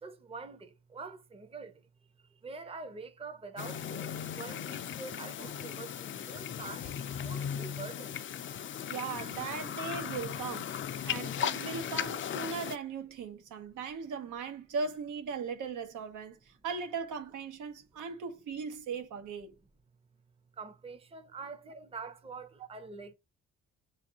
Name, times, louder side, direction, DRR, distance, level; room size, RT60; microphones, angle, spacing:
voice 1, 0.0-1.8 2.4-6.9 7.2-8.1 20.5-23.1, right 4 dB, 20° right, 0.7 m, -45 dB
sound 1, 3.6-12.8, left 9 dB, 40° left, 0.4 m, -37 dB
voice 2, 8.9-19.5, right 5 dB, 80° right, 0.9 m, -38 dB
6.2 x 2.5 x 2.8 m
cardioid pair, 90°, 30 cm